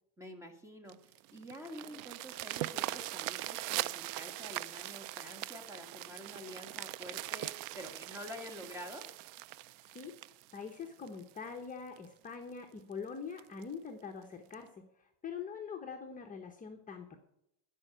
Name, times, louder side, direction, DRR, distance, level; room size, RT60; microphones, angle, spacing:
voice 1, 0.2-9.1, left 1 dB, 5° right, 5 dB, 1.7 m, -48 dB
sound 1, 0.9-11.4 12.0-12.1 12.5-12.6 12.9-13.0 13.4-13.6 14.5-14.6, right 16 dB, 55° right, 0.5 m, -41 dB
voice 2, 10.5-17.2, left 6 dB, 20° left, 2 dB, 1.0 m, -44 dB
14.5 x 5.5 x 7.6 m, 0.81 s
supercardioid pair, 135°, 41 cm